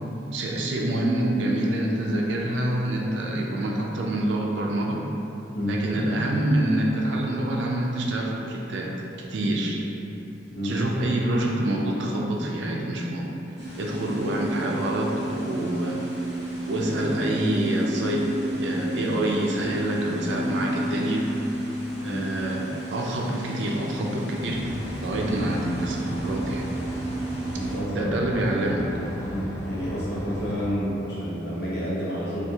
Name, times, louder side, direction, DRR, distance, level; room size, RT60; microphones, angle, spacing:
voice 1, 0.3-5.1 5.6-8.9 9.2-9.8 10.6-13.3 13.8-16.0 16.6-21.3 22.0-26.7 27.9-28.9, right 1 dB, 75° right, -1 dB, 0.4 m, -26 dB
sound 1, 13.6-27.8, right 1 dB, 15° right, 0.8 m, -32 dB
sound 2, 24.4-30.7, equal, 15° left, 0.3 m, -36 dB
voice 2, 27.5-28.1 29.2-32.4, equal, 60° left, -9 dB, 0.8 m, -30 dB
3.5 x 2.4 x 2.8 m, 3.0 s
head